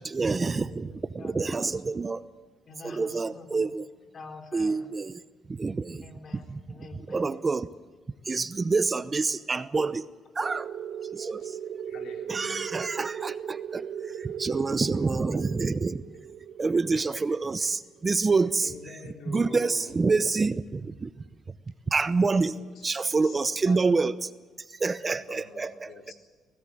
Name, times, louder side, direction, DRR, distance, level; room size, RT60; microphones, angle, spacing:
voice 1, 0.0-0.8 1.1-2.2 2.8-3.9 4.5-5.2 5.5-6.0 6.5-6.6 7.1-7.7 8.3-10.1 10.4-10.7 11.1-11.5 12.3-16.0 16.6-18.7 19.3-21.1 21.9-22.6 22.8-24.3 24.8-25.9, right 4 dB, 30° right, 14 dB, 0.8 m, -27 dB
voice 2, 0.7-1.7 2.7-3.7 4.1-4.9 6.0-7.4, left 3 dB, 45° left, 5 dB, 3.6 m, -47 dB
voice 3, 5.9-6.6 11.4-11.6 11.9-12.8 16.9-17.7 18.6-20.0 22.5-24.0 25.1-26.1, left 5 dB, 75° left, 2 dB, 3.9 m, -48 dB
sound 1, 10.4-18.7, right 8 dB, 65° right, 1.3 m, -38 dB
24.5 x 17.5 x 7.7 m, 1.4 s
cardioid pair, 90°, 0 cm